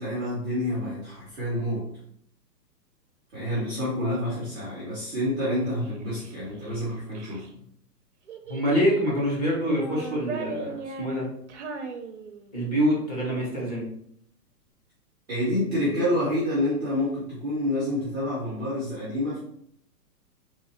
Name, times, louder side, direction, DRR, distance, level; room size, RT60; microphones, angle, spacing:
voice 1, 0.0-1.8 3.3-7.4 15.3-19.4, left 1 dB, 5° right, -10 dB, 0.6 m, -28 dB
Child speech kid speaking, 5.8-7.5 8.3-9.1 9.6-12.7, right 4 dB, 50° right, 0.5 m, -38 dB
voice 2, 8.5-11.3 12.5-13.9, equal, 25° left, -4 dB, 1.1 m, -25 dB
3.6 x 2.8 x 4.2 m, 0.68 s
hypercardioid pair, 175°, 48 cm